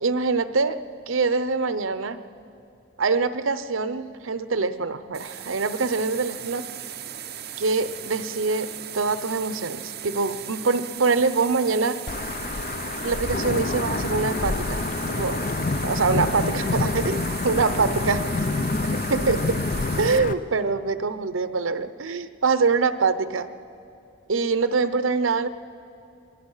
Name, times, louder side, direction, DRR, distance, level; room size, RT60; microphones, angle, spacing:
voice 1, 0.0-2.2 3.0-6.7 7.6-12.0 13.0-14.8 15.1-18.3 19.1-19.6 20.0-23.5 24.3-25.5, right 4 dB, 80° right, 12 dB, 0.8 m, -24 dB
sound 1, 5.1-20.2, right 10 dB, 50° right, 0.9 m, -37 dB
Wind / Thunder / Rain, 12.1-20.3, left 3 dB, 40° left, 0.6 m, -27 dB
27.0 x 20.0 x 5.6 m, 2.7 s
head